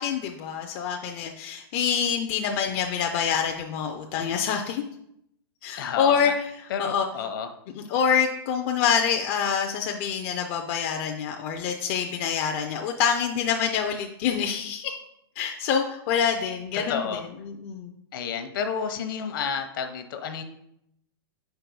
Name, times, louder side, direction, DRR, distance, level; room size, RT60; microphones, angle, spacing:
voice 1, 0.0-4.8 5.6-7.1 7.7-14.9 15.4-17.9, left 7 dB, 35° left, 3 dB, 0.4 m, -26 dB
voice 2, 5.8-6.3 6.7-7.5 16.7-17.2 18.1-20.4, left 6 dB, 60° left, 7 dB, 0.8 m, -30 dB
4.6 x 4.3 x 5.3 m, 0.77 s
hypercardioid pair, 160°, 13 cm